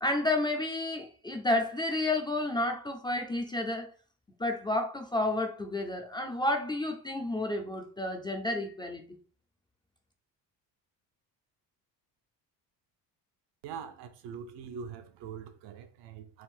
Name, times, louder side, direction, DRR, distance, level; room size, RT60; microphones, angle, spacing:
voice 1, 0.0-3.9 4.4-9.0, left 2 dB, 10° left, 0.4 m, -31 dB
voice 2, 13.6-16.4, right 7 dB, 80° right, 0.7 m, -43 dB
3.7 x 2.5 x 4.3 m
cardioid pair, 145°, 41 cm